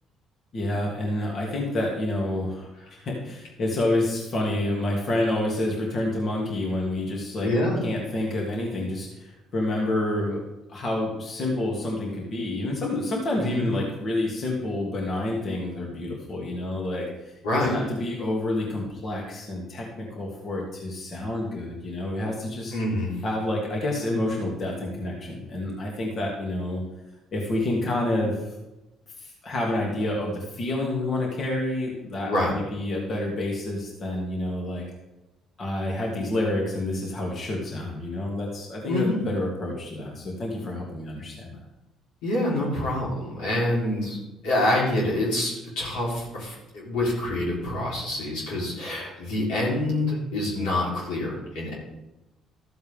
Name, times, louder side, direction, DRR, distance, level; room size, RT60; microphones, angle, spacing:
voice 1, 0.5-2.7 3.1-7.5 7.8-10.4 10.7-17.1 17.5-22.7 23.2-26.8 27.3-28.3 29.2-34.8 35.6-41.6, left 1 dB, 50° left, -2 dB, 2.7 m, -28 dB
voice 2, 7.4-7.8 13.4-13.7 17.4-17.8 22.7-23.2 32.3-32.6 38.9-39.2 42.2-44.2 44.4-51.7, left 1 dB, 85° left, -5 dB, 4.0 m, -26 dB
13.5 x 7.8 x 3.7 m, 0.98 s
supercardioid pair, 70°, 0 cm